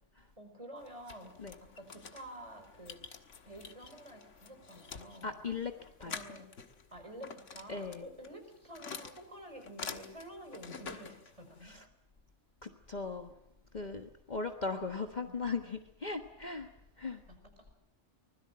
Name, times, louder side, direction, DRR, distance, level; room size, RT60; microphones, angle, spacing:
voice 1, 0.4-1.3 1.6-3.0 3.4-5.3 6.0-6.5 6.9-11.8 14.6-15.4 17.3-17.7, right 1 dB, 25° right, 5 dB, 5.3 m, -50 dB
sound 1, 0.8-11.8, left 5 dB, 80° left, 1.8 m, -48 dB
voice 2, 5.2-5.7 6.0-6.2 7.7-8.1 11.6-11.9 12.6-13.3 13.7-16.7 17.0-17.2, left 4 dB, 35° left, 5 dB, 1.4 m, -38 dB
24.5 x 20.5 x 7.6 m, 0.80 s
omnidirectional pair, 1.3 m